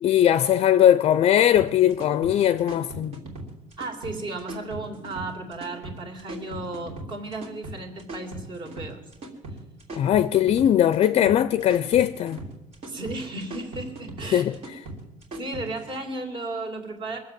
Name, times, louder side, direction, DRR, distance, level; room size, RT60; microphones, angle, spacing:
voice 1, 0.0-3.2 9.9-12.4 14.3-14.5, left 11 dB, 50° left, 0.5 m, -20 dB
sound 1, 1.6-16.0, right 1 dB, 55° right, 3.0 m, -39 dB
voice 2, 3.8-9.0 12.9-14.6 15.4-17.2, right 2 dB, 40° right, 2.7 m, -34 dB
22.0 x 7.4 x 7.5 m
cardioid pair, 140°, 13 cm